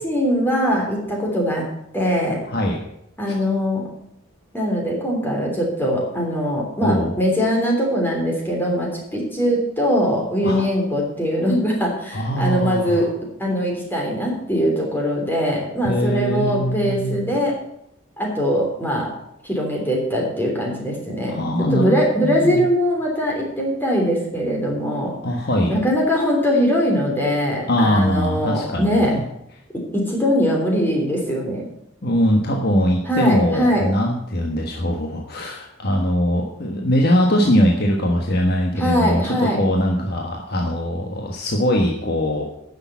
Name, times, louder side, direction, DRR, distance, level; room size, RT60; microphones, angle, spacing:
voice 1, 0.0-2.4 3.2-3.9 4.5-13.1 13.4-17.6 18.2-19.1 19.4-21.4 21.7-25.2 25.7-29.1 29.7-31.6 33.0-33.9 38.8-39.7, equal, 10° left, -1 dB, 3.3 m, -21 dB
voice 2, 2.5-2.8 6.8-7.1 10.4-10.6 12.1-13.1 15.8-17.3 21.3-22.6 25.2-25.7 27.7-29.2 32.0-42.4, equal, 50° left, 1 dB, 1.4 m, -21 dB
10.0 x 6.8 x 8.3 m, 0.78 s
head